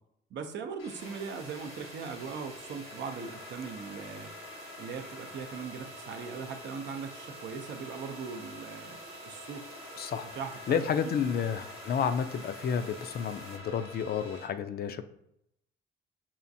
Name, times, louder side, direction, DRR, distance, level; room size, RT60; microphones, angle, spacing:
voice 1, 0.3-4.3 4.8-9.6 10.2-10.8, right 6 dB, 65° right, 7 dB, 0.5 m, -40 dB
sound 1, 0.8-14.5, left 2 dB, 85° left, 1.1 m, -48 dB
sound 2, 1.0-13.6, right 2 dB, 30° right, 0.9 m, -50 dB
voice 2, 10.0-10.3 10.7-15.0, left 7 dB, 50° left, 10 dB, 0.4 m, -31 dB
5.6 x 2.4 x 2.6 m, 0.78 s
cardioid pair, 90°, 20 cm